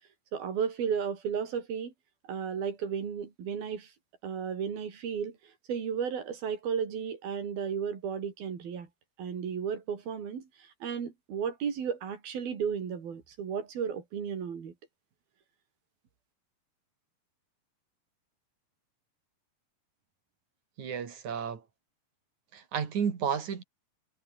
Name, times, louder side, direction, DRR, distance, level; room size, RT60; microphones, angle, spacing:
voice 1, 0.3-1.9 2.3-3.9 4.2-5.4 5.7-8.9 9.2-14.7, right 7 dB, 80° right, 5.6 m, -34 dB
voice 2, 20.8-21.6 22.5-23.6, right 7 dB, 55° right, 4.0 m, -32 dB
omnidirectional pair, 4.2 m